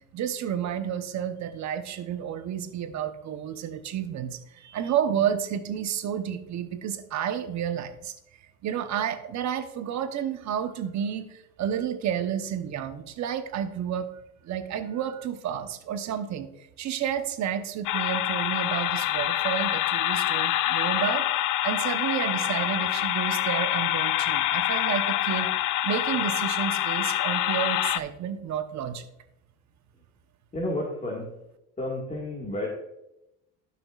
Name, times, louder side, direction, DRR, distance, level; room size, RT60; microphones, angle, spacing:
voice 1, 0.1-8.1 8.6-14.1 14.4-25.5 25.8-29.0, right 9 dB, 50° right, 8 dB, 1.0 m, -31 dB
sound 1, 17.9-28.0, left 14 dB, 60° left, 0.5 m, -26 dB
voice 2, 30.5-31.3 31.8-32.7, left 1 dB, 20° left, -2 dB, 1.8 m, -31 dB
12.5 x 6.1 x 2.4 m, 0.84 s
cardioid pair, 110°, 35 cm